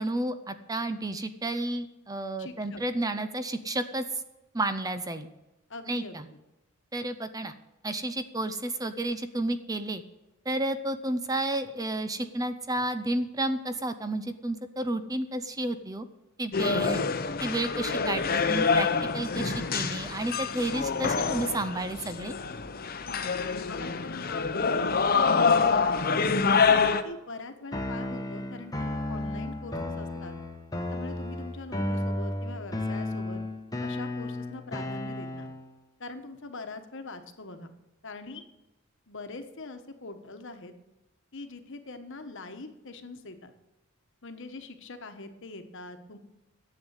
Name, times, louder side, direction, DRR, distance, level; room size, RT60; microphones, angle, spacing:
voice 1, 0.0-4.2 4.5-5.3 5.9-6.2 6.9-7.5 7.8-10.0 10.5-16.1 16.4-17.0 17.4-18.9 19.1-22.4, right 1 dB, 15° right, 10 dB, 0.6 m, -31 dB
voice 2, 2.4-2.8 5.7-6.3 23.1-23.3 23.6-26.1 26.7-30.3 30.9-33.4 33.8-35.5 36.0-37.7 38.0-38.4 39.1-40.7 41.3-43.5 44.2-46.2, left 3 dB, 60° left, 7 dB, 1.3 m, -43 dB
sound 1, 16.5-27.0, left 5 dB, 40° left, 0.8 m, -26 dB
sound 2, 27.7-35.7, left 1 dB, 15° left, 1.1 m, -33 dB
11.0 x 7.9 x 8.2 m, 0.99 s
head